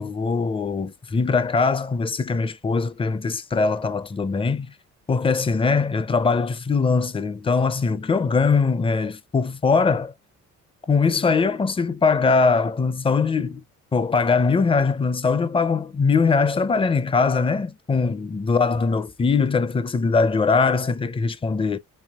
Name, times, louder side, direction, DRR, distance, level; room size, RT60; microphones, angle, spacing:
voice 1, 0.0-4.7 5.1-10.1 10.9-13.6 13.9-21.8, left 4 dB, 20° left, 0.5 m, -21 dB
5.5 x 2.5 x 2.4 m
cardioid pair, 90°, 30 cm